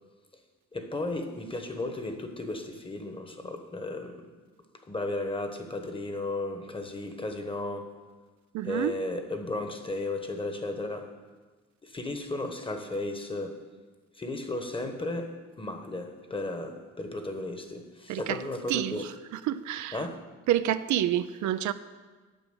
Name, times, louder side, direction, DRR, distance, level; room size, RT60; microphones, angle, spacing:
voice 1, 0.7-4.2 4.9-7.9 8.6-11.1 11.8-13.6 14.1-19.1 19.9-20.2, left 2 dB, 15° left, 1.2 m, -34 dB
voice 2, 8.5-8.9 18.1-18.4 18.7-19.0 19.5-20.0 20.5-21.7, right 12 dB, 75° right, 0.5 m, -28 dB
9.0 x 5.9 x 8.1 m
cardioid pair, 90°, 30 cm